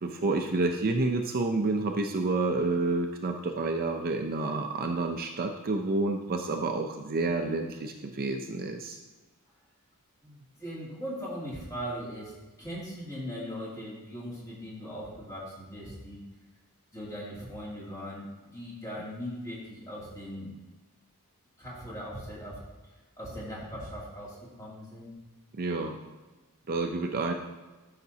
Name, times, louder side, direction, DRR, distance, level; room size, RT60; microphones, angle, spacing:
voice 1, 0.0-9.0 25.6-26.0 26.7-27.3, right 3 dB, 40° right, 4 dB, 0.5 m, -29 dB
voice 2, 10.2-12.3 12.6-16.2 16.9-20.5 21.6-22.6 23.2-25.1, equal, 15° left, -7 dB, 2.6 m, -39 dB
12.5 x 5.8 x 2.8 m, 1.2 s
head